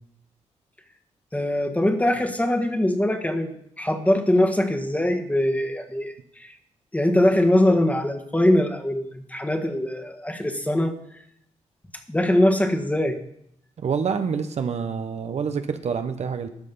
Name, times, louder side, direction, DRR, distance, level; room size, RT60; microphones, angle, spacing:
voice 1, 1.3-6.5 6.9-11.0 12.1-13.2, left 1 dB, 10° left, 4 dB, 1.6 m, -22 dB
voice 2, 13.8-16.5, right 6 dB, 60° right, 8 dB, 0.9 m, -27 dB
13.0 x 6.4 x 5.5 m, 0.71 s
cardioid pair, 70°, 12 cm